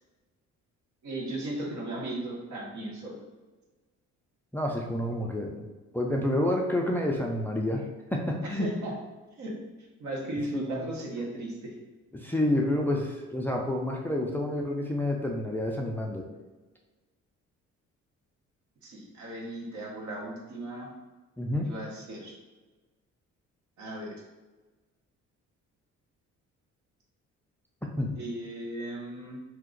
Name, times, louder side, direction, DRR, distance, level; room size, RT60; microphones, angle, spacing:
voice 1, 1.0-3.2 8.5-8.9 9.4-9.6 10.0-11.8 18.8-20.9 21.6-22.3 23.8-24.2 28.2-29.4, right 1 dB, 70° right, -2 dB, 1.1 m, -36 dB
voice 2, 4.5-5.6 5.9-8.7 10.5-10.8 12.1-16.2 21.4-21.7 28.0-28.1, left 1 dB, 5° left, 0 dB, 0.4 m, -29 dB
2.8 x 2.5 x 3.8 m, 1.2 s
cardioid pair, 90°, 30 cm